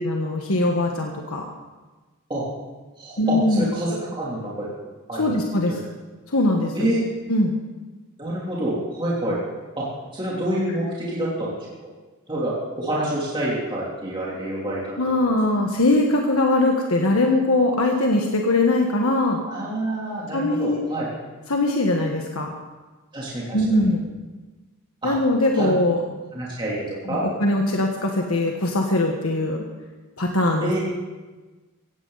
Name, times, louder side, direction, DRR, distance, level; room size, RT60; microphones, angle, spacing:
voice 1, 0.0-1.4 3.2-3.6 5.2-5.8 6.3-6.9 7.3-7.5 15.0-19.4 20.3-20.8 21.5-22.5 23.5-24.1 25.0-26.0 27.1-29.6 30.2-30.7, left 2 dB, 75° left, 1 dB, 1.5 m, -21 dB
voice 2, 3.0-4.7 5.1-5.4 6.7-7.0 8.2-9.4 9.7-9.8 10.1-11.5 12.3-14.8 19.5-21.1 23.1-23.6 25.0-25.1 25.5-25.7 26.3-27.3 30.6-30.8, right 1 dB, 20° right, -6 dB, 3.3 m, -27 dB
17.5 x 16.0 x 4.1 m, 1.3 s
head